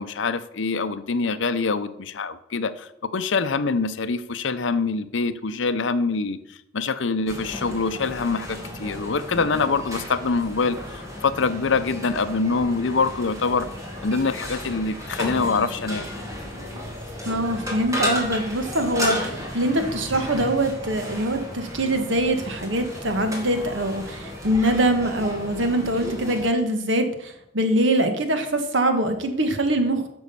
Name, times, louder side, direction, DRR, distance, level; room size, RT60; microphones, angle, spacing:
voice 1, 0.0-6.4 6.7-13.7 14.0-16.0, left 4 dB, 65° left, 13 dB, 0.7 m, -25 dB
sound 1, 7.3-26.5, equal, 15° right, 2.3 m, -34 dB
voice 2, 17.2-30.1, right 1 dB, 70° right, 7 dB, 1.4 m, -23 dB
9.4 x 6.2 x 6.9 m, 0.82 s
head